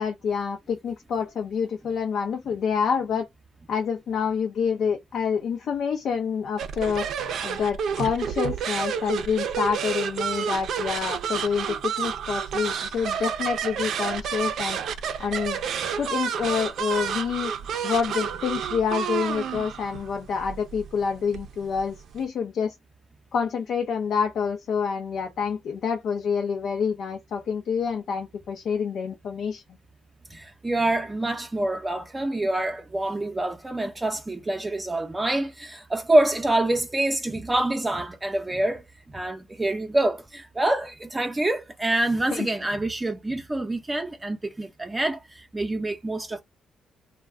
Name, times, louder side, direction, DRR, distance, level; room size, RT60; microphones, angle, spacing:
voice 1, 0.0-3.3 3.7-7.1 7.4-14.8 15.2-15.6 16.0-17.5 17.8-22.7 23.3-29.6 42.3-42.5, left 6 dB, 65° left, 0.5 m, -27 dB
sound 1, 6.6-22.2, right 7 dB, 70° right, 0.5 m, -30 dB
voice 2, 30.3-38.8 39.1-46.4, right 1 dB, 15° right, 0.6 m, -26 dB
2.3 x 2.2 x 3.4 m
cardioid pair, 90°, 0 cm